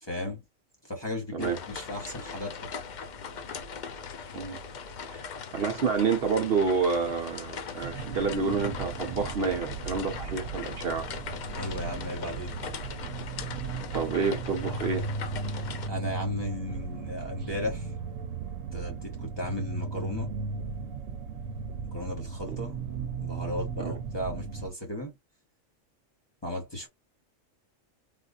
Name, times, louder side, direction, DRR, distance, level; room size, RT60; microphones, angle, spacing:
voice 1, 0.0-0.4 0.8-2.7 11.6-12.5 15.9-17.9 18.7-20.3 21.9-22.8 23.2-25.1 26.4-26.9, left 1 dB, 25° left, 0.9 m, -35 dB
sound 1, 1.4-15.9, left 5 dB, 60° left, 0.5 m, -40 dB
voice 2, 5.5-11.1 13.9-15.1 23.8-23.9, right 5 dB, 55° right, 0.9 m, -28 dB
sound 2, 7.8-24.7, right 4 dB, 85° right, 1.0 m, -36 dB
3.5 x 2.5 x 2.4 m
omnidirectional pair, 1.3 m